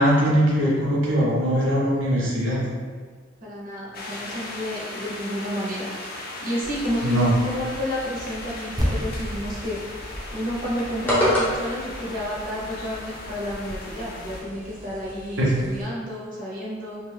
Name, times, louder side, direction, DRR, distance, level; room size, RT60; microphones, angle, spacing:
voice 1, 0.0-2.6 7.0-7.3 15.4-15.5, equal, 75° right, -5 dB, 0.8 m, -21 dB
voice 2, 3.4-9.8 10.3-17.0, equal, 45° right, -5 dB, 0.7 m, -31 dB
sound 1, 3.9-14.4, left 2 dB, 50° left, 0.4 m, -38 dB
Telephone - Hang up L Close R Distant, 6.6-15.8, equal, 10° left, 0.7 m, -32 dB
sound 2, 8.8-13.3, equal, 20° right, 0.4 m, -32 dB
2.5 x 2.3 x 3.3 m, 1.5 s
head